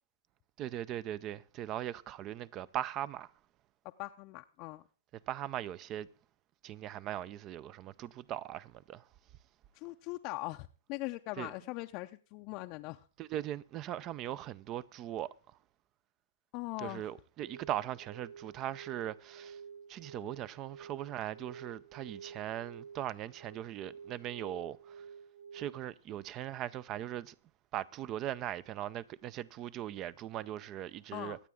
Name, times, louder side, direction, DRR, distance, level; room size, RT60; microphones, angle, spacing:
voice 1, 0.6-3.3 5.3-6.1 6.6-9.1 11.4-11.5 13.2-15.3 16.8-19.6 19.9-25.1 25.5-27.3 27.7-31.4, right 12 dB, 30° right, 0.5 m, -39 dB
voice 2, 4.0-4.8 9.7-13.0 16.5-17.1 31.1-31.4, left 21 dB, 40° left, 0.6 m, -41 dB
sound 1, 17.4-25.9, right 6 dB, 80° right, 3.4 m, -51 dB
24.5 x 8.3 x 3.7 m
hypercardioid pair, 115°, 0 cm